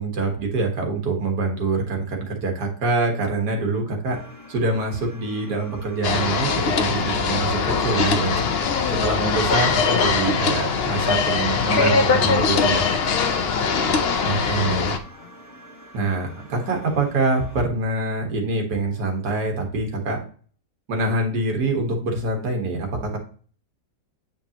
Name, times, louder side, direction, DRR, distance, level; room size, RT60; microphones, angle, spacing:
voice 1, 0.0-4.2 4.5-8.5 9.0-12.8 14.2-15.0 15.9-20.2 20.9-23.2, right 3 dB, 85° right, 2 dB, 2.0 m, -25 dB
sound 1, 4.1-17.7, equal, 10° left, 1.3 m, -45 dB
sound 2, 6.0-15.0, left 5 dB, 60° left, 0.7 m, -21 dB
voice 2, 8.5-9.1 13.1-15.3, left 9 dB, 75° left, 6 dB, 1.3 m, -34 dB
8.7 x 5.3 x 2.9 m, 0.43 s
omnidirectional pair, 1.7 m